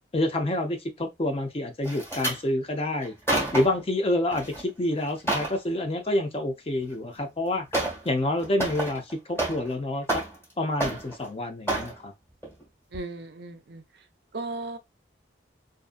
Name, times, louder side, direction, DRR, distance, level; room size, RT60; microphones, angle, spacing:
voice 1, 0.1-3.1 3.5-7.7 8.0-10.2 10.6-12.1, left 1 dB, 30° left, 0.5 m, -28 dB
sound 1, 1.8-2.4 3.0-3.8 4.3-4.6 5.0-5.6 6.9-7.0 7.7-8.1 8.4-9.7 10.0-10.5 10.8-11.3 11.7-11.9 12.4-12.6 12.9-13.0, right 1 dB, 15° left, 1.2 m, -29 dB
voice 2, 12.9-13.8 14.3-14.8, right 2 dB, 55° right, 0.5 m, -36 dB
2.6 x 2.5 x 2.4 m
head